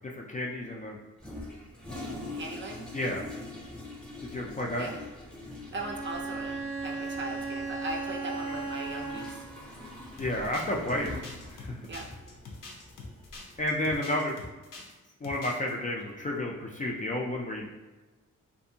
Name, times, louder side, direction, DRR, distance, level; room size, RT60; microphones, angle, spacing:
voice 1, 0.1-1.0 2.9-3.3 4.2-4.9 10.2-11.1 11.6-11.7 13.6-14.4 15.2-17.7, left 1 dB, 25° left, -1 dB, 0.3 m, -31 dB
Toilet flush, 1.2-14.0, left 2 dB, 5° left, 0.7 m, -44 dB
voice 2, 2.3-2.8 4.8-4.9 5.7-9.4 11.9-12.0, right 2 dB, 35° right, 1 dB, 0.5 m, -38 dB
Bowed string instrument, 5.7-9.6, right 3 dB, 85° right, 0.8 m, -36 dB
sound 1, 10.2-14.9 15.2-15.7, left 3 dB, 80° left, 0.6 m, -45 dB
2.6 x 2.5 x 2.7 m, 1.2 s
cardioid pair, 85°, 32 cm